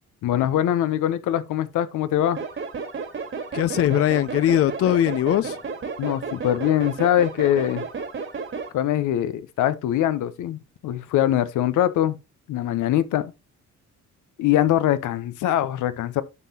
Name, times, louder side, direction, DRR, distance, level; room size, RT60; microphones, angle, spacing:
voice 1, 0.2-2.4 6.0-7.9 8.7-12.2 12.5-13.3 14.4-16.2, left 12 dB, 85° left, 0.9 m, -23 dB
sound 1, 2.4-8.7, right 5 dB, 40° right, 1.7 m, -32 dB
voice 2, 3.5-5.6, left 12 dB, 50° left, 0.4 m, -20 dB
9.5 x 5.7 x 2.9 m
cardioid pair, 90°, 30 cm